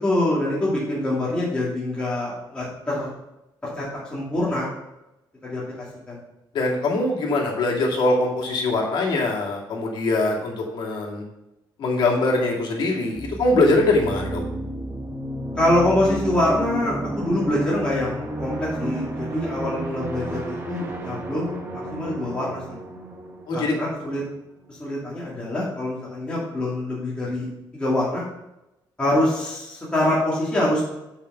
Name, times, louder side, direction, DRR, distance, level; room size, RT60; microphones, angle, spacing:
voice 1, 0.0-3.1 3.8-4.7 5.4-5.6 6.1-6.2 15.6-21.6 21.9-22.6 23.5-24.2 24.7-27.5 27.7-28.2 29.0-30.8, left 1 dB, 10° left, -8 dB, 2.3 m, -24 dB
voice 2, 6.5-11.2 11.8-14.4 23.5-23.7, left 2 dB, 65° left, -1 dB, 2.2 m, -22 dB
sound 1, 13.1-24.7, right 1 dB, 25° right, 1.4 m, -32 dB
6.7 x 5.6 x 6.7 m, 0.93 s
cardioid pair, 150°, 8 cm